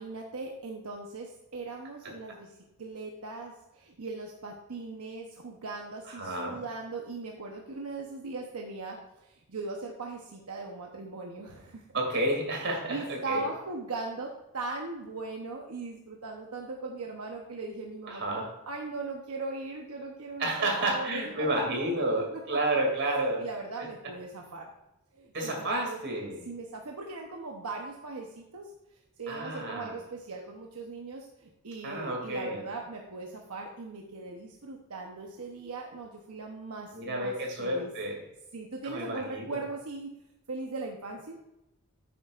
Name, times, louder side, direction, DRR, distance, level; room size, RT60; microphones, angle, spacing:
voice 1, 0.0-2.5 2.8-11.8 12.9-22.0 23.4-24.7 25.1-26.0 26.4-28.7 29.2-37.9 38.5-40.1 40.5-41.4, right 3 dB, 85° right, 1 dB, 0.9 m, -39 dB
voice 2, 6.2-6.6 11.9-13.5 18.1-18.5 20.4-23.4 25.3-26.4 29.3-29.9 31.8-32.6 36.9-38.2 38.8-39.6, right 1 dB, 55° right, 0 dB, 2.6 m, -30 dB
10.0 x 8.5 x 2.5 m, 0.91 s
head